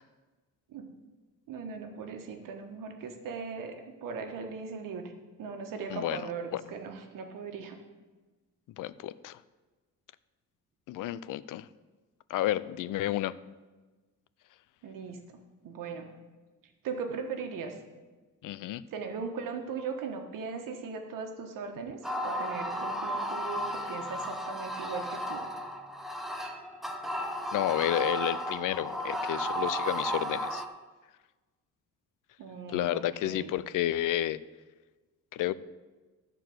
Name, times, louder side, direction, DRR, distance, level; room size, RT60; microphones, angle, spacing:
voice 1, 1.5-5.1 5.4-7.8 14.8-16.1 16.8-17.8 18.9-25.4 32.4-33.5, right 5 dB, 75° right, 4 dB, 1.4 m, -39 dB
voice 2, 5.9-6.6 8.8-9.4 10.9-11.7 12.3-13.3 18.4-18.8 27.5-30.6 32.7-34.4 35.3-35.5, left 13 dB, 70° left, 16 dB, 0.5 m, -31 dB
sound 1, 22.0-30.7, equal, ahead, 0.7 m, -34 dB
13.5 x 4.5 x 7.7 m, 1.2 s
cardioid pair, 155°, 33 cm